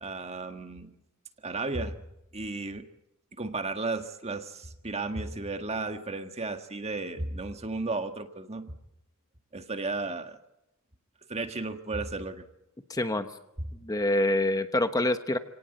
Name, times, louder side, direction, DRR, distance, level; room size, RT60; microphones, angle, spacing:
voice 1, 0.0-1.0 1.4-2.0 2.3-2.9 3.3-8.7 9.5-10.4 11.3-12.5, right 3 dB, 30° right, 7 dB, 1.7 m, -34 dB
voice 2, 12.9-13.3 13.8-15.4, left 1 dB, 15° left, 8 dB, 1.0 m, -26 dB
29.0 x 18.0 x 8.0 m, 0.89 s
head